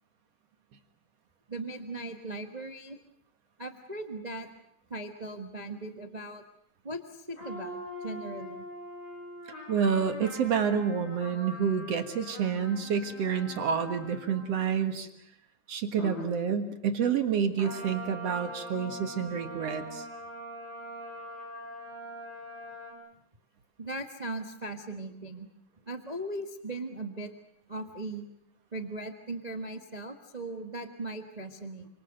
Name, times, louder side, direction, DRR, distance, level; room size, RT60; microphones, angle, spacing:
voice 1, 1.5-3.0 3.6-4.5 4.9-6.4 6.8-8.6 23.8-25.5 25.8-27.3 27.7-28.3 28.7-31.9, right 2 dB, 30° right, 6 dB, 0.8 m, -38 dB
sound 1, 7.4-14.8 16.0-16.3 17.6-22.9, equal, 35° left, 6.6 m, -43 dB
voice 2, 9.7-15.1 15.7-20.0, right 7 dB, 55° right, 8 dB, 2.5 m, -28 dB
28.5 x 26.0 x 6.6 m, 0.69 s
omnidirectional pair, 3.5 m